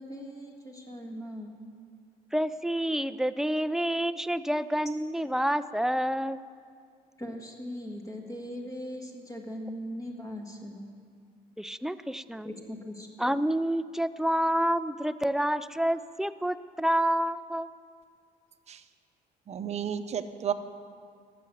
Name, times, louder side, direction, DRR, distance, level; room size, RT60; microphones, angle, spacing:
voice 1, 0.0-1.6 7.2-10.9 12.4-13.1, equal, 20° left, 2 dB, 1.6 m, -39 dB
voice 2, 2.3-6.4 11.6-12.5 13.2-17.7, equal, 5° right, 13 dB, 0.3 m, -28 dB
voice 3, 19.5-20.5, right 8 dB, 40° right, 9 dB, 0.7 m, -32 dB
12.5 x 6.9 x 9.0 m, 2.1 s
cardioid pair, 110°, 17 cm